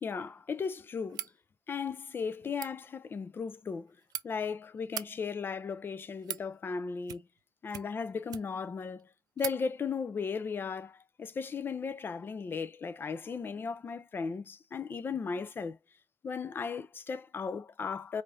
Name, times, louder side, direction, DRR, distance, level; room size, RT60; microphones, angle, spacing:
voice 1, 0.0-1.3 1.7-4.0 4.2-7.2 7.6-9.1 9.4-15.8 16.2-18.2, left 5 dB, 30° left, 0.4 m, -36 dB
sound 1, 1.1-1.4 2.4-2.7 3.7-4.2 4.8-5.1 5.9-6.5 7.0-7.4 7.7-8.7 9.0-9.1 9.4-9.6, right 11 dB, 75° right, 0.4 m, -40 dB
5.0 x 2.5 x 2.6 m
cardioid pair, 135°, 7 cm